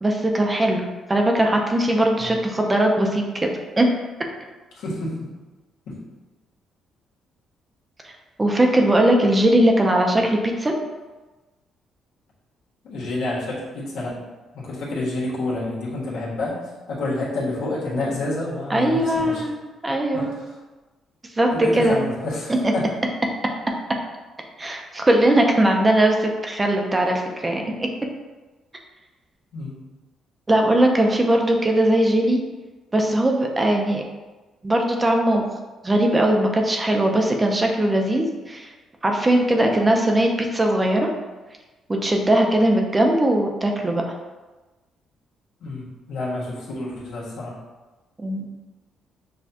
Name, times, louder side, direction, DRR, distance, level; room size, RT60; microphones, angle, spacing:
voice 1, 0.0-3.5 3.8-3.9 8.0-8.1 8.4-10.7 18.7-19.5 19.8-20.4 21.4-22.0 24.6-27.9 30.5-32.4 32.9-34.0 34.6-35.4 35.8-38.7 39.0-41.1 41.9-44.0 48.2-48.4, right 1 dB, 20° right, 2 dB, 0.6 m, -19 dB
voice 2, 4.8-5.3 5.9-6.0 12.8-14.3 14.5-16.6 16.9-19.4 20.1-20.2 21.5-22.8 29.5-29.7 45.6-47.6, left 2 dB, 85° left, -6 dB, 1.4 m, -28 dB
6.3 x 2.3 x 2.8 m, 1.2 s
cardioid pair, 90°, 0 cm